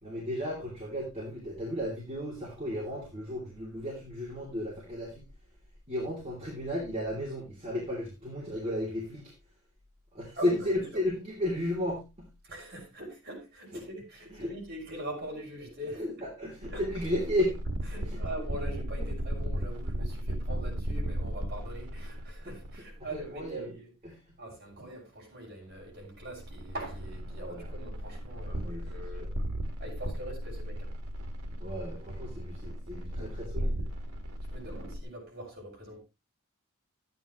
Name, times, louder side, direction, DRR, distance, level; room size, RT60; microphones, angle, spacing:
voice 1, 0.0-5.2 5.9-9.3 10.1-12.3 13.7-13.8 14.4-14.5 15.9-17.6 18.1-18.2 22.4-22.6 23.3-23.7 24.0-24.2 27.3-27.7 28.5-29.3 31.6-33.9, left 1 dB, 30° right, 2.7 m, -34 dB
voice 2, 10.4-11.0 12.4-16.1 16.7-16.8 17.9-29.3 29.8-30.9 33.2-33.3 34.5-36.0, right 1 dB, 45° right, 6.1 m, -42 dB
sound 1, 16.6-23.4 25.7-35.0, equal, 85° right, 1.7 m, -36 dB
13.5 x 9.2 x 3.0 m
head